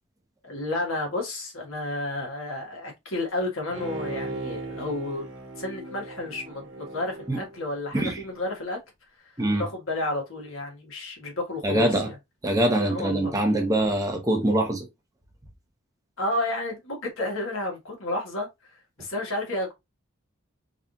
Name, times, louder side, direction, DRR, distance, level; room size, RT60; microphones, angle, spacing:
voice 1, 0.4-5.3 5.6-8.8 9.2-12.2 12.9-13.3 16.2-19.7, left 2 dB, 85° left, 1.8 m, -31 dB
Bowed string instrument, 3.7-8.3 8.7-8.8, right 2 dB, 60° right, 1.3 m, -38 dB
voice 2, 11.6-12.1 12.4-14.8, right 1 dB, 15° right, 0.9 m, -23 dB
3.8 x 3.2 x 2.8 m
head